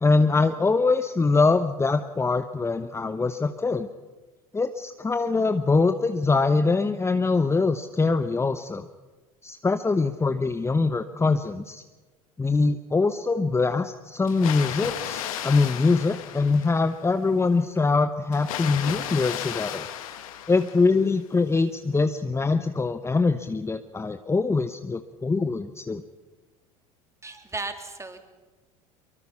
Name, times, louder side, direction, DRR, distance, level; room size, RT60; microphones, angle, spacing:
voice 1, 0.0-3.9 4.5-8.8 9.4-11.8 12.4-19.9 20.5-26.0, left 3 dB, 15° left, 9 dB, 1.0 m, -23 dB
Water, 14.3-17.1 18.3-21.1, left 10 dB, 70° left, 1.9 m, -34 dB
voice 2, 27.2-28.2, right 3 dB, 15° right, 6 dB, 3.2 m, -35 dB
24.0 x 23.5 x 5.8 m, 1.3 s
figure-of-eight pair, 70°, 18 cm